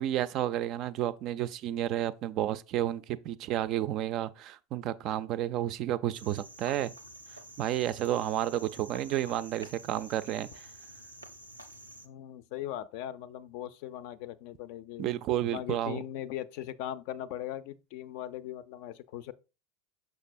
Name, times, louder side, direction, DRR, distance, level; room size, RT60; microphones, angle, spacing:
voice 1, 0.0-6.9 7.6-10.7 15.0-16.0, right 12 dB, 40° right, 0.3 m, -31 dB
Cricket, 6.1-12.1, right 1 dB, 90° right, 0.6 m, -49 dB
voice 2, 12.0-15.1 15.5-19.3, left 12 dB, 50° left, 0.4 m, -39 dB
6.4 x 5.8 x 2.5 m
figure-of-eight pair, 80°, 0 cm